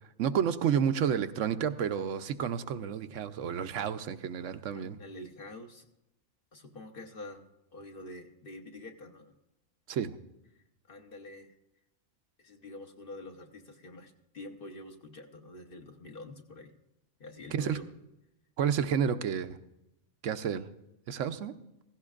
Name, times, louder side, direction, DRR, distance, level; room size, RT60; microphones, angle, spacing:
voice 1, 0.2-5.0 9.9-10.2 17.5-17.8 18.6-19.6 20.2-20.7 21.1-21.5, right 8 dB, 75° right, 10 dB, 1.0 m, -30 dB
voice 2, 4.8-5.9 6.5-7.4 7.7-9.4 10.9-11.6 12.4-16.7 17.2-17.9, left 2 dB, 45° left, 4 dB, 1.2 m, -47 dB
16.5 x 15.5 x 2.4 m, 0.89 s
omnidirectional pair, 1.3 m